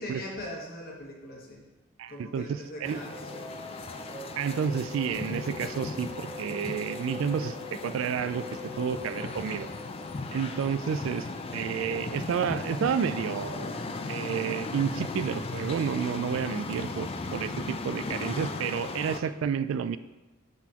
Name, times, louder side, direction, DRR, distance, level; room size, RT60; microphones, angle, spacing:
voice 1, 0.0-1.6 2.1-3.6 11.1-11.3, left 1 dB, 45° left, -1 dB, 1.3 m, -41 dB
voice 2, 2.0-3.0 4.4-8.5 8.8-9.7 10.3-11.3 11.5-13.7 14.1-20.0, right 7 dB, 70° right, 13 dB, 0.3 m, -30 dB
sound 1, 2.8-19.2, left 3 dB, 30° left, 0.3 m, -37 dB
sound 2, 2.8-10.7, left 3 dB, 10° right, 1.9 m, -43 dB
10.5 x 4.0 x 2.9 m, 1.1 s
head